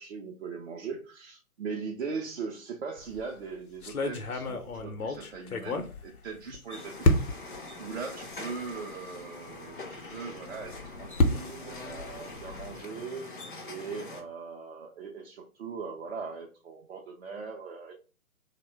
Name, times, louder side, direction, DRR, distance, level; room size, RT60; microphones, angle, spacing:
voice 1, 0.0-13.4 13.7-17.9, right 5 dB, 50° right, -1 dB, 0.5 m, -40 dB
sound 1, 3.0-3.3 3.8-6.6 7.0-7.6 8.3-8.4 8.7-8.8 10.5-12.8, left 2 dB, 80° left, 0.7 m, -29 dB
sound 2, 6.7-14.2, left 2 dB, 40° left, 0.4 m, -44 dB
2.9 x 2.1 x 3.2 m, 0.34 s
figure-of-eight pair, 135°, 44 cm